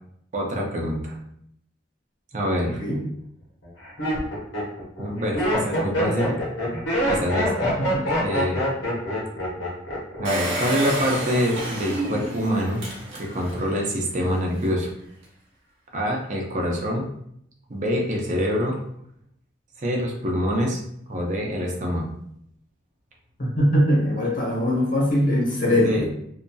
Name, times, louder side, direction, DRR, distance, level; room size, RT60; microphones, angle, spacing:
voice 1, 0.3-1.2 2.3-2.8 5.0-6.4 7.0-7.7 8.2-8.6 10.2-12.8 13.1-14.9 15.9-17.1 17.7-18.8 19.8-20.8 21.1-22.1 25.8-26.1, equal, 40° right, -1 dB, 0.6 m, -25 dB
Laughter, 2.9-3.0 3.6-10.2 10.5-11.0, equal, 70° left, 1.0 m, -25 dB
Engine, 10.2-13.7 14.2-14.3 14.5-14.6, right 1 dB, 75° right, 1.0 m, -29 dB
voice 2, 23.4-26.1, equal, 45° left, -4 dB, 1.0 m, -21 dB
2.7 x 2.6 x 2.3 m, 0.71 s
head